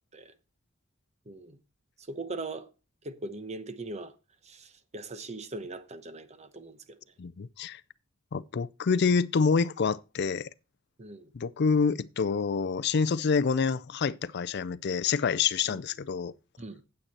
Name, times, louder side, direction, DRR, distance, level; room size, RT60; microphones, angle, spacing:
voice 1, 1.3-1.6 2.1-2.7 3.0-4.1 4.4-6.8 11.0-11.3 15.7-15.8 16.6-16.8, right 2 dB, 35° right, 0.9 m, -40 dB
voice 2, 7.2-7.8 8.3-10.5 11.3-16.3, left 5 dB, 55° left, 0.4 m, -27 dB
9.0 x 8.4 x 4.3 m
head